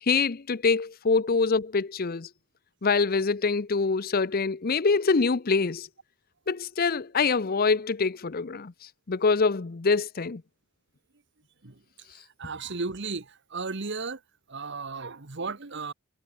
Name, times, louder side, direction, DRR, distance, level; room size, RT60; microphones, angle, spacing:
voice 1, 0.0-2.3 2.8-5.9 6.5-8.7 9.1-10.4, left 4 dB, 45° left, 0.7 m, -25 dB
voice 2, 12.4-14.2 14.5-15.9, right 4 dB, 60° right, 1.3 m, -34 dB
head